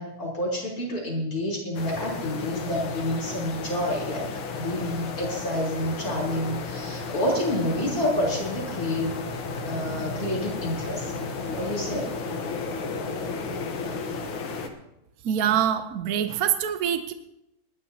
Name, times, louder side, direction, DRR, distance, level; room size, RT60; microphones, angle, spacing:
voice 1, 0.0-4.3 4.5-9.2 9.7-11.1 11.5-12.1, left 1 dB, 40° left, -3 dB, 4.1 m, -28 dB
sound 1, 1.7-14.7, left 4 dB, 70° left, 2.0 m, -33 dB
voice 2, 15.2-17.1, right 9 dB, 70° right, 8 dB, 0.8 m, -24 dB
27.5 x 10.5 x 2.8 m, 0.87 s
omnidirectional pair, 2.4 m